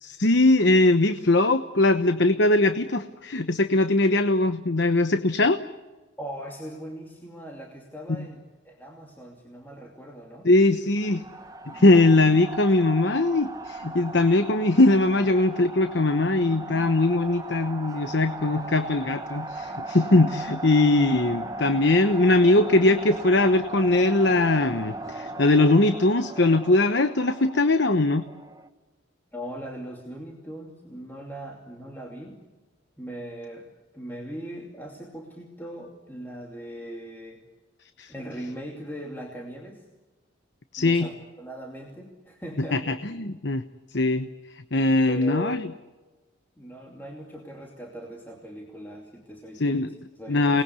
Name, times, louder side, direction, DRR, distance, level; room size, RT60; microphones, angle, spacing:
voice 1, 0.0-5.6 8.1-8.2 10.4-11.2 11.7-28.2 38.0-38.1 40.7-41.1 42.7-43.6 43.9-45.7 49.6-49.9 50.3-50.6, left 2 dB, 60° left, 10 dB, 1.0 m, -21 dB
voice 2, 6.2-10.5 29.3-32.4 33.0-33.7 33.9-37.4 38.1-39.8 40.8-42.9 45.1-45.6 46.6-50.6, right 1 dB, 10° left, -1 dB, 2.7 m, -39 dB
sound 1, 11.0-28.7, right 2 dB, 20° right, 1.2 m, -37 dB
28.5 x 20.5 x 8.3 m, 1.2 s
head